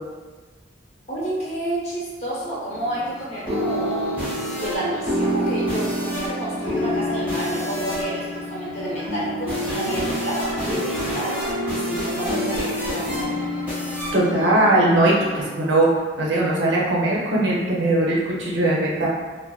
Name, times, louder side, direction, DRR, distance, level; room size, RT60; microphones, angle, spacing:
voice 1, 1.1-13.4, right 1 dB, 35° left, -8 dB, 0.7 m, -30 dB
sound 1, 2.7-15.4, equal, 10° right, 0.6 m, -27 dB
voice 2, 14.1-15.9 16.2-19.1, right 1 dB, 75° right, -4 dB, 0.6 m, -20 dB
2.4 x 2.1 x 2.3 m, 1.3 s
head